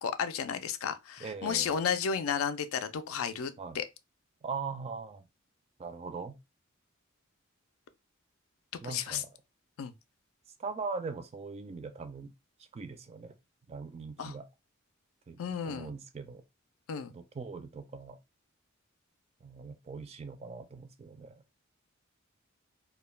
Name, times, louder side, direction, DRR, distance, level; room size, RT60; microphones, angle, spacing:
voice 1, 0.0-3.9 8.8-9.2 9.8-9.9 14.2-14.3 15.4-15.9 16.9-17.1, left 7 dB, 85° left, 0.4 m, -33 dB
voice 2, 1.2-1.7 3.6-3.8 4.4-5.2 5.8-6.4 8.8-9.3 10.6-12.3 12.7-13.3 13.7-14.5 15.3-15.4 15.6-16.4 17.1-18.2 19.4-21.4, right 4 dB, 30° right, 0.3 m, -40 dB
2.3 x 2.1 x 3.1 m
head